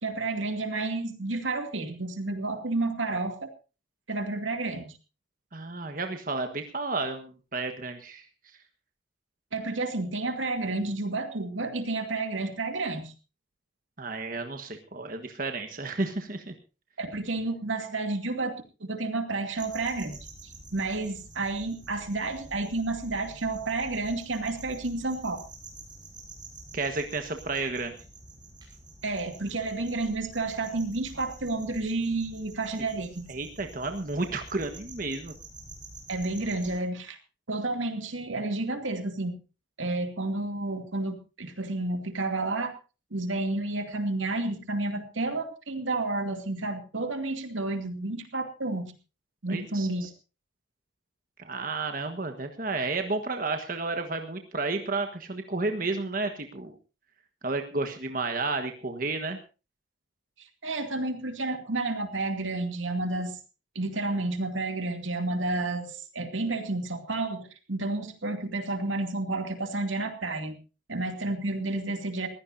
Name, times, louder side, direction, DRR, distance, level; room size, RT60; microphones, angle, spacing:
voice 1, 0.0-3.5 4.1-4.9 9.5-13.1 17.0-25.4 29.0-33.3 36.1-37.2 37.5-39.3 39.8-42.8 43.1-48.9 49.4-50.1 60.4-63.4 63.7-70.5 70.9-72.3, right 2 dB, 85° right, 6 dB, 2.5 m, -31 dB
voice 2, 5.5-8.2 14.0-16.5 26.7-28.0 33.3-35.3 49.5-50.1 51.4-56.7 57.4-59.4, right 3 dB, 45° right, 5 dB, 1.4 m, -32 dB
sound 1, 19.5-36.8, right 2 dB, 25° right, 5.5 m, -48 dB
22.0 x 16.0 x 2.7 m, 0.32 s
head